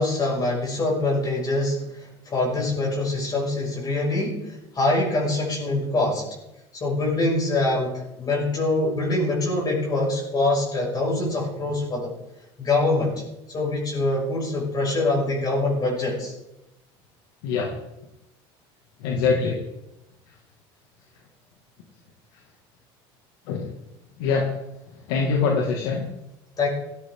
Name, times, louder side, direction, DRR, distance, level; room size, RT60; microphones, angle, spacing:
voice 1, 0.0-6.2 6.7-12.1 12.6-13.1 13.5-16.3 26.6-26.7, left 2 dB, 35° left, -3 dB, 6.2 m, -24 dB
voice 2, 19.0-19.6 23.5-23.6 24.2-24.5 25.1-26.1, left 5 dB, 85° left, 0 dB, 2.3 m, -23 dB
16.5 x 14.5 x 3.9 m, 0.92 s
supercardioid pair, 105°, 12 cm